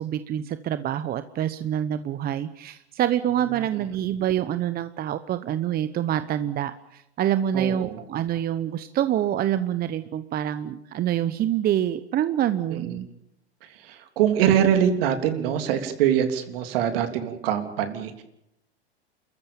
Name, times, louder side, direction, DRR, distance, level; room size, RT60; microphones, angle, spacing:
voice 1, 0.0-13.1, right 11 dB, 30° right, 12 dB, 1.0 m, -26 dB
voice 2, 7.5-8.0 12.8-13.0 13.6-18.2, right 9 dB, 60° right, 7 dB, 3.3 m, -24 dB
28.0 x 14.5 x 8.9 m, 0.83 s
hypercardioid pair, 105°, 33 cm